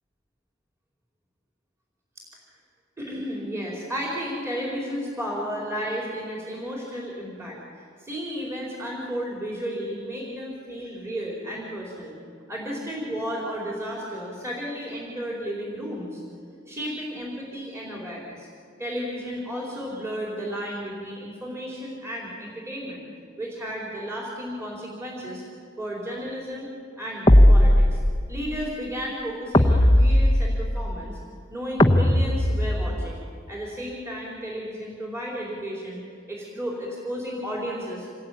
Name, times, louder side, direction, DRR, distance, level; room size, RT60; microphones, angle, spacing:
voice 1, 3.0-12.2 12.5-16.2 16.7-18.5 18.8-23.1 23.4-25.4 25.8-26.7 27.0-28.0 28.3-31.2 31.5-36.0 36.3-38.1, equal, 15° right, -4 dB, 4.6 m, -33 dB
sound 1, 27.3-28.3 29.5-30.8 31.8-33.1, left 1 dB, 20° left, 1.1 m, -17 dB
27.5 x 20.0 x 9.4 m, 2.3 s
head